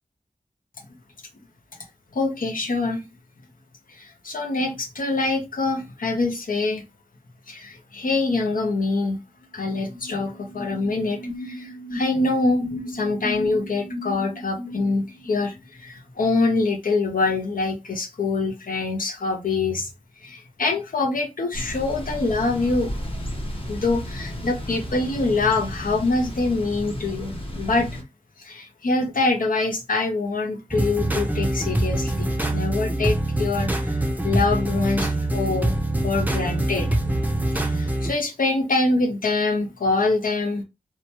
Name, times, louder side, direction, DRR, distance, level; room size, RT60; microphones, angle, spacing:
voice 1, 2.1-3.0 3.9-6.8 7.5-9.2 9.5-19.9 20.2-22.9 23.7-27.9 28.4-34.0 34.2-35.8 36.0-36.9 37.5-40.6, left 3 dB, 75° left, 0.7 m, -25 dB
sound 1, 9.4-9.5 9.7-15.5, left 1 dB, 60° left, 1.2 m, -36 dB
Thunder / Bicycle, 21.5-28.0, equal, 40° left, 0.8 m, -33 dB
sound 2, 30.7-38.1, right 1 dB, 10° right, 0.5 m, -24 dB
2.8 x 2.2 x 2.8 m
wide cardioid pair, 70°, 14 cm